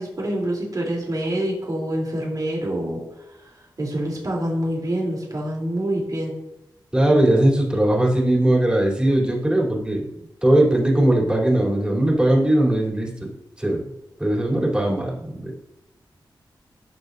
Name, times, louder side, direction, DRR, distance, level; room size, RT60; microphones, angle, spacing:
voice 1, 0.0-3.0 3.8-6.4, right 1 dB, 50° right, -3 dB, 3.6 m, -26 dB
voice 2, 6.9-10.0 10.4-13.3 13.6-13.8 14.2-15.5, right 1 dB, 10° right, -4 dB, 3.8 m, -19 dB
18.5 x 7.1 x 2.8 m, 0.89 s
wide cardioid pair, 75°, 8 cm